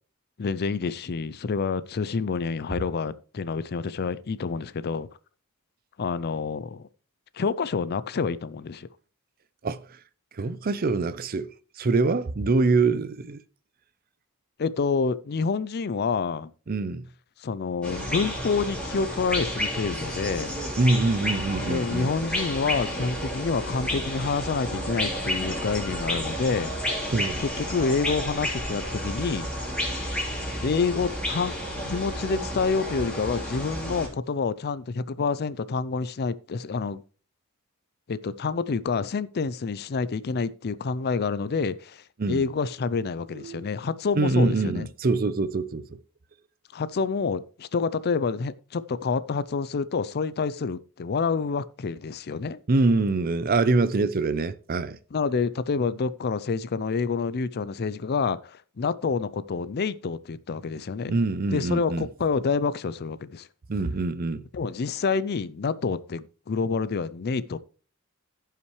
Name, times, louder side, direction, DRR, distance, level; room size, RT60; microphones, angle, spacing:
voice 1, 0.4-5.1 6.0-6.9 7.3-8.9 14.6-16.5 17.4-20.6 21.6-27.1 27.4-29.7 30.6-31.6 31.8-37.0 38.1-44.9 46.7-52.6 55.1-61.2 61.5-63.5 64.5-67.6, left 5 dB, 45° left, 0.4 m, -28 dB
voice 2, 10.4-11.5 11.8-13.4 16.7-17.0 20.8-22.1 27.1-27.4 42.2-42.4 43.4-43.7 44.2-46.0 52.7-55.0 61.1-62.1 63.7-64.4, right 3 dB, 40° right, 0.5 m, -24 dB
sound 1, 17.8-34.1, equal, 5° left, 3.6 m, -31 dB
15.5 x 5.8 x 3.2 m
head